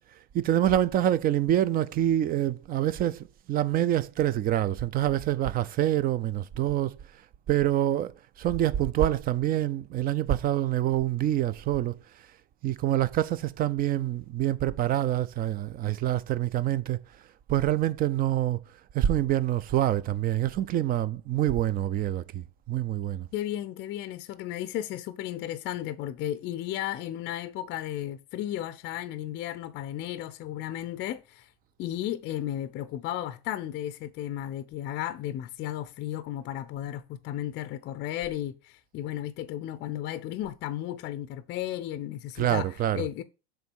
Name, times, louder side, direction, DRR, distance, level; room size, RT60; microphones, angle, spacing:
voice 1, 0.3-7.0 7.5-12.0 12.6-17.0 17.5-18.6 18.9-23.3 42.4-43.1, right 12 dB, 25° right, 0.5 m, -26 dB
voice 2, 23.3-31.5 31.8-43.2, left 12 dB, 35° left, 0.6 m, -34 dB
6.8 x 3.7 x 6.2 m
hypercardioid pair, 115°, 33 cm